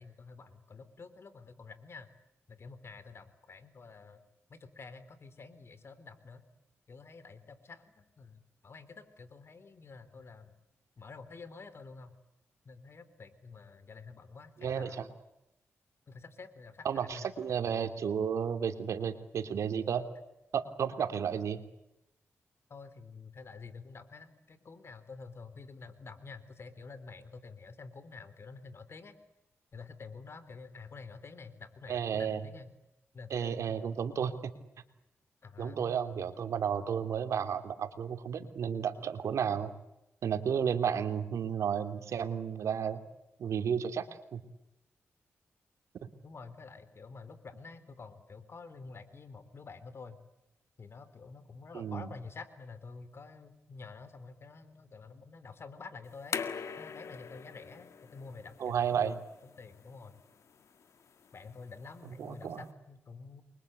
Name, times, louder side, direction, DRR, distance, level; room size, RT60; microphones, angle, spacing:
voice 1, 0.0-2.1 2.5-4.2 4.5-6.4 6.9-10.5 11.0-12.2 12.7-15.0 16.1-16.9 17.1-17.3 22.7-29.2 29.7-32.7 33.1-34.0 35.4-35.8 46.2-50.2 50.8-56.4 56.8-59.0 59.4-60.2 61.3-63.4, left 4 dB, 55° left, 13 dB, 3.9 m, -49 dB
voice 2, 14.6-15.1 16.8-20.0 20.5-21.6 31.9-32.4 33.3-34.4 35.6-39.7 40.2-43.0 43.4-44.1 44.3-44.4 51.7-52.1 58.6-59.2 62.2-62.6, right 7 dB, 85° right, 8 dB, 3.0 m, -32 dB
sound 1, 56.0-62.7, left 6 dB, 75° left, 1.9 m, -44 dB
30.0 x 23.5 x 8.2 m, 0.87 s
cardioid pair, 75°, 5 cm